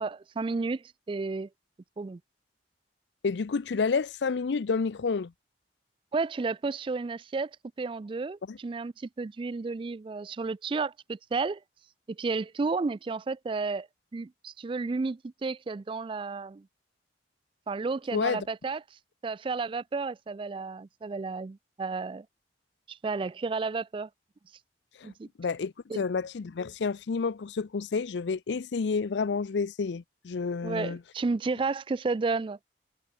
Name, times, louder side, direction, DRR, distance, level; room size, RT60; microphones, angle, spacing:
voice 1, 0.0-1.5 2.0-2.2 6.1-7.5 7.8-11.6 12.1-13.9 14.1-16.7 17.7-22.3 22.9-24.1 25.0-25.3 25.9-26.0 30.6-32.6, right 4 dB, 30° right, 0.3 m, -32 dB
voice 2, 3.2-5.3 8.5-8.6 18.1-18.4 25.0-25.1 25.4-31.0, left 5 dB, 80° left, 0.5 m, -29 dB
head